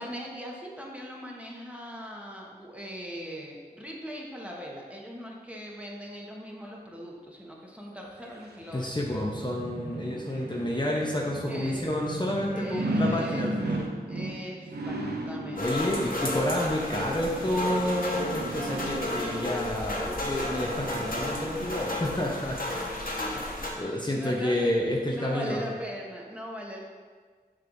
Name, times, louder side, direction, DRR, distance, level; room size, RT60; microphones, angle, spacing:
voice 1, 0.0-9.0 11.5-11.9 12.5-13.7 14.1-15.0 15.2-15.7 23.2-24.7 25.1-26.8, equal, 10° right, -2 dB, 1.2 m, -40 dB
sound 1, 8.3-22.2 22.6-22.7, right 1 dB, 75° right, 0.8 m, -36 dB
voice 2, 8.7-13.9 15.6-23.0 23.3-23.4 23.8-25.7, left 1 dB, 25° left, -3 dB, 0.8 m, -29 dB
sound 2, 15.6-23.7, left 1 dB, 55° left, 1.2 m, -33 dB
sound 3, 18.5-22.3, right 1 dB, 50° right, 1.2 m, -48 dB
6.7 x 6.6 x 2.6 m, 1.5 s
wide cardioid pair, 50°, 17 cm